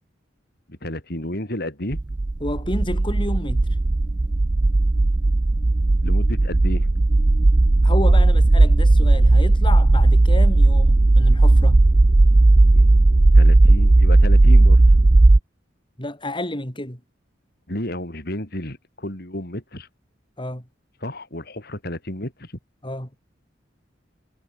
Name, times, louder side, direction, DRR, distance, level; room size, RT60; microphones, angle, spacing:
voice 1, 0.7-2.0 6.0-6.9 12.7-14.8 17.7-19.9 21.0-22.5, left 1 dB, 55° left, 7.1 m, -32 dB
sound 1, 1.9-15.4, right 2 dB, 25° right, 0.4 m, -15 dB
voice 2, 2.4-3.7 7.8-11.8 16.0-17.0 20.4-20.7 22.8-23.1, left 1 dB, 25° left, 6.6 m, -30 dB
head